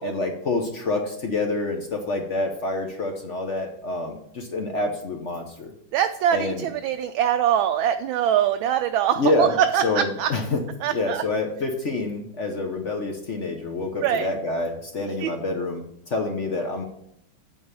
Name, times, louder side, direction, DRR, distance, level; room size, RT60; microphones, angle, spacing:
voice 1, 0.0-5.7 6.3-6.7 9.2-9.5 9.8-10.6 10.9-16.8, left 2 dB, 50° left, 3 dB, 0.9 m, -27 dB
voice 2, 5.9-10.3 10.8-11.2 14.0-14.3 15.2-15.3, right 9 dB, 75° right, 7 dB, 1.2 m, -23 dB
8.7 x 4.7 x 6.7 m, 0.75 s
omnidirectional pair, 2.4 m